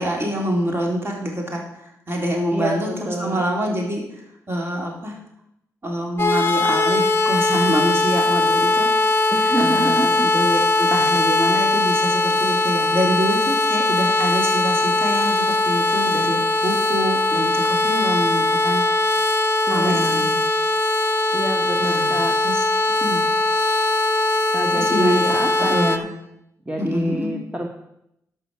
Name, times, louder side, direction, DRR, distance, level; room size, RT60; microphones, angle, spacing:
voice 1, 0.0-4.2 4.5-5.2 5.8-9.3 9.6-18.8 19.7-20.4 21.8-22.1 22.4-22.6 23.0-23.2 24.7-26.0 26.8-27.3, equal, 40° right, -1 dB, 3.8 m, -26 dB
voice 2, 2.5-3.4 9.3-10.3 19.7-20.3 21.3-22.4 24.5-26.1 26.6-27.7, right 1 dB, 20° right, 1 dB, 1.5 m, -27 dB
sound 1, 6.2-26.0, left 2 dB, 35° left, 1.3 m, -20 dB
12.0 x 6.0 x 6.8 m, 0.81 s
cardioid pair, 60°, 6 cm